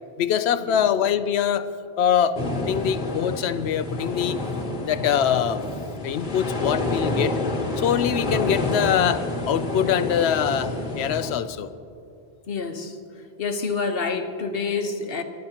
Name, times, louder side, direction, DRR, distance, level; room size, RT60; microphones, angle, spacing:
voice 1, 0.2-1.7 2.0-4.4 4.8-5.6 6.0-7.4 7.8-11.7, left 9 dB, 90° left, 12 dB, 0.9 m, -23 dB
sound 1, 2.3-11.4, left 2 dB, 50° left, 1.6 m, -28 dB
voice 2, 12.5-13.0 13.4-15.2, left 4 dB, 65° left, 6 dB, 1.3 m, -27 dB
28.5 x 12.5 x 2.9 m, 2.5 s
omnidirectional pair, 1.1 m